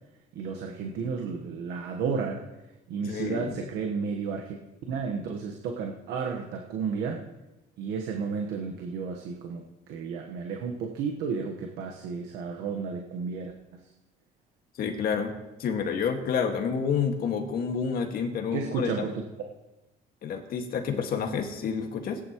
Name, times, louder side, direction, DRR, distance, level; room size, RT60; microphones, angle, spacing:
voice 1, 0.3-2.4 2.9-4.6 4.9-7.2 7.8-9.6 9.9-13.5 18.5-19.2, right 5 dB, 90° right, 2 dB, 1.2 m, -32 dB
voice 2, 3.0-3.5 14.8-15.3 15.6-19.0 20.2-22.2, left 6 dB, 60° left, 4 dB, 1.9 m, -29 dB
18.5 x 10.5 x 3.0 m, 1.0 s
cardioid pair, 110°, 17 cm